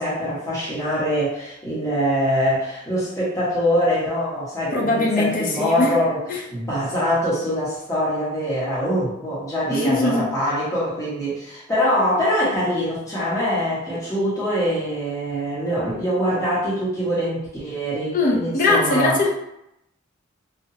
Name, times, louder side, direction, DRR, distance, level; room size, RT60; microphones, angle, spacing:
voice 1, 0.0-6.2 6.5-19.2, equal, 15° left, -10 dB, 1.3 m, -23 dB
voice 2, 4.7-6.0 6.3-6.4 9.7-10.3 18.1-19.3, left 2 dB, 45° left, -2 dB, 0.7 m, -21 dB
4.1 x 2.7 x 2.8 m, 0.82 s
head